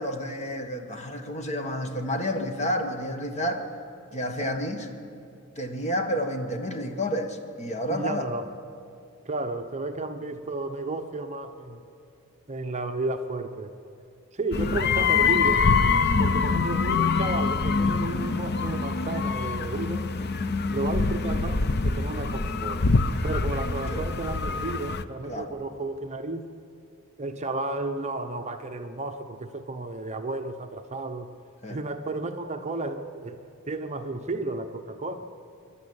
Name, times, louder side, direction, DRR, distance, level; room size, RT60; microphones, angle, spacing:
voice 1, 0.0-3.7 4.1-4.9 5.5-8.2 16.0-16.4 23.9-24.1 25.3-25.5 31.6-31.8, equal, 30° left, 6 dB, 1.6 m, -30 dB
voice 2, 7.9-8.5 9.3-11.8 12.5-13.8 14.3-15.7 16.2-20.1 20.7-22.9 23.2-26.5 27.2-31.3 31.7-33.4 33.7-35.1, right 2 dB, 30° right, 6 dB, 0.9 m, -33 dB
sound 1, 14.5-25.0, left 4 dB, 50° left, 0.7 m, -25 dB
25.5 x 12.0 x 8.8 m, 2.6 s
head